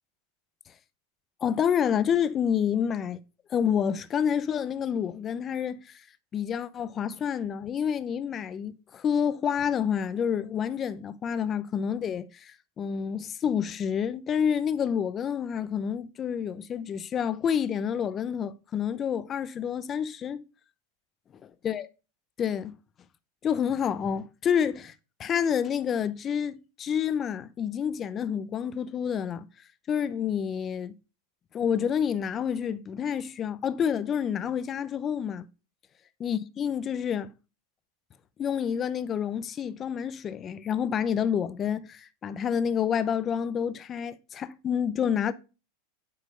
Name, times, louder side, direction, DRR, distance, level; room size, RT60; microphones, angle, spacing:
voice 1, 1.4-3.2 3.5-6.0 6.3-20.4 21.6-21.8 22.4-22.8 23.4-24.9 25.2-29.5 29.9-30.9 31.5-35.5 36.2-37.3 38.4-45.3, left 8 dB, 30° left, 0.7 m, -28 dB
8.3 x 4.6 x 5.3 m
hypercardioid pair, 115°, 0 cm